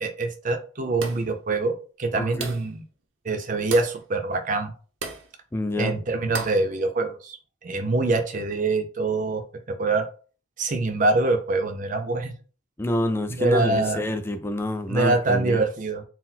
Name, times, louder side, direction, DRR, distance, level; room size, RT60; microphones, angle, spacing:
voice 1, 0.0-2.8 3.2-4.7 5.8-7.4 7.6-9.4 9.7-10.0 10.6-12.3 13.4-14.0 14.9-16.0, right 3 dB, 40° right, 0.6 m, -24 dB
sound 1, 1.0-1.4 2.4-2.8 3.7-4.0 5.0-5.3 6.3-6.7, right 4 dB, 80° right, 0.7 m, -34 dB
voice 2, 2.1-2.5 5.5-5.9 12.8-15.6, left 1 dB, 10° left, 0.4 m, -27 dB
3.9 x 2.1 x 4.2 m
head